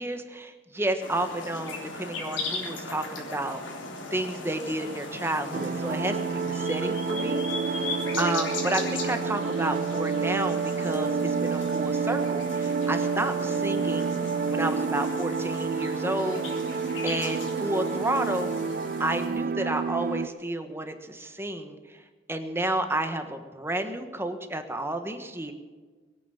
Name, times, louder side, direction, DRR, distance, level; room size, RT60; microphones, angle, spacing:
voice 1, 0.0-3.8 4.1-7.4 7.8-14.2 14.5-16.4 17.0-18.5 19.0-22.0 22.3-25.5, right 1 dB, 15° right, 7 dB, 1.3 m, -31 dB
sound 1, 1.0-19.3, left 3 dB, 85° left, 3.6 m, -38 dB
sound 2, 5.5-20.3, right 5 dB, 50° right, 0.4 m, -29 dB
22.0 x 9.2 x 7.1 m, 1.4 s
head